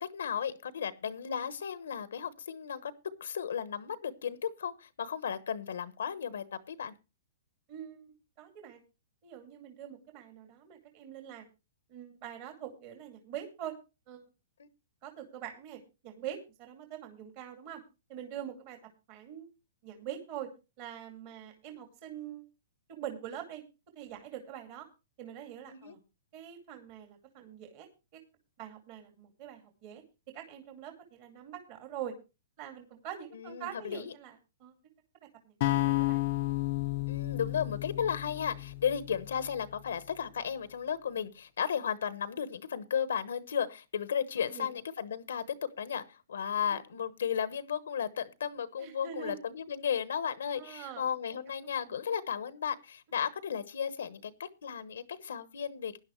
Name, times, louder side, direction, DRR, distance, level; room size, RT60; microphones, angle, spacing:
voice 1, 0.0-2.9 3.2-6.9 14.6-14.7 25.7-25.9 33.3-34.1 37.1-56.0, left 8 dB, 85° left, 1.1 m, -34 dB
voice 2, 7.7-8.8 9.2-11.5 11.9-13.7 14.1-14.2 15.0-17.8 18.1-18.8 19.1-19.5 19.8-20.5 20.8-22.4 22.9-23.6 24.0-24.9 25.2-26.0 26.3-28.2 28.6-30.0 30.3-32.1 32.6-34.7 35.4-36.2 44.4-44.7 48.8-49.4 50.6-51.0 51.6-51.7 52.0-52.1, right 10 dB, 40° right, 2.4 m, -44 dB
sound 1, 35.6-39.7, left 20 dB, 45° left, 0.6 m, -32 dB
16.5 x 10.5 x 3.1 m
hypercardioid pair, 150°, 0 cm